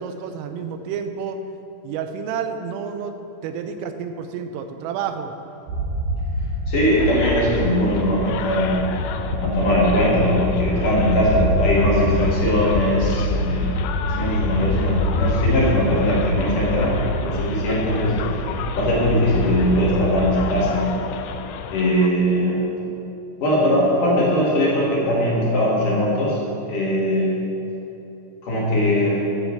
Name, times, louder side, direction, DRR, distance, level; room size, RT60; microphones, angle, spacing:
voice 1, 0.0-1.4 1.8-5.3, right 7 dB, 90° right, 7 dB, 3.5 m, -30 dB
sound 1, 5.7-20.4, left 1 dB, 50° right, 4.5 m, -25 dB
voice 2, 6.7-8.8 9.4-13.7 14.2-18.2 18.8-20.9 21.7-22.6 23.4-26.4 26.7-27.4 28.4-29.2, equal, 55° left, -5 dB, 2.8 m, -20 dB
sound 2, 7.0-22.1, left 7 dB, 85° left, 2.9 m, -32 dB
9.8 x 9.7 x 7.6 m, 2.9 s
omnidirectional pair, 5.7 m